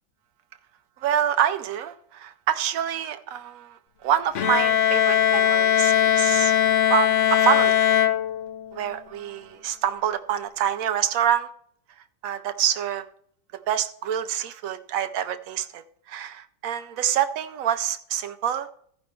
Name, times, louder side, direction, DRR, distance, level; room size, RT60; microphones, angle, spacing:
voice 1, 1.0-6.5 6.9-8.0 8.7-11.5 12.2-13.0 13.7-18.7, right 9 dB, 85° right, 10 dB, 0.7 m, -26 dB
Bowed string instrument, 4.4-8.8, left 10 dB, 80° left, 0.6 m, -20 dB
14.5 x 5.3 x 4.3 m, 0.64 s
omnidirectional pair, 2.0 m